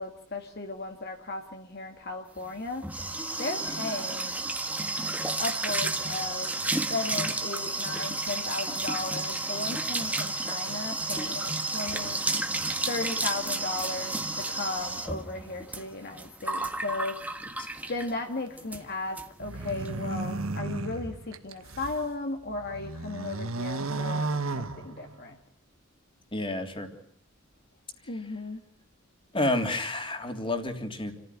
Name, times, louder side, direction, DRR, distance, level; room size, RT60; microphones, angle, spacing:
voice 1, 0.0-2.9 3.4-4.4 5.4-6.6 6.9-12.2 12.9-17.2 17.9-25.4 28.1-28.6, left 3 dB, 50° left, 4 dB, 1.9 m, -35 dB
sound 1, 2.4-18.2 18.6-18.8 19.2-19.3 19.5-19.9, right 2 dB, 5° right, 1.7 m, -32 dB
sound 2, 19.4-22.0 22.5-25.3, right 3 dB, 85° right, 1.3 m, -34 dB
voice 2, 26.3-26.9 29.3-31.1, left 1 dB, 25° left, 5 dB, 3.3 m, -29 dB
29.0 x 15.0 x 9.9 m, 0.66 s
head